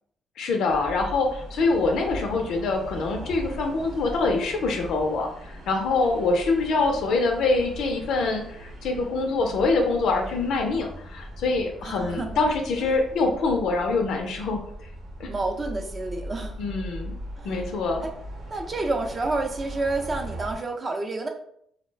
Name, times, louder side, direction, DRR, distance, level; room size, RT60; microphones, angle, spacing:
voice 1, 0.4-14.7 15.2-15.3 16.6-17.1 17.4-18.0, left 3 dB, 80° left, 3 dB, 0.4 m, -25 dB
sound 1, 0.6-20.6, right 1 dB, 70° right, 0.8 m, -39 dB
voice 2, 11.8-12.3 15.3-16.6 17.4-17.6 18.0-18.1 18.5-21.3, right 2 dB, 35° right, 3 dB, 0.5 m, -29 dB
2.3 x 2.1 x 3.2 m, 0.68 s
cardioid pair, 90°, 0 cm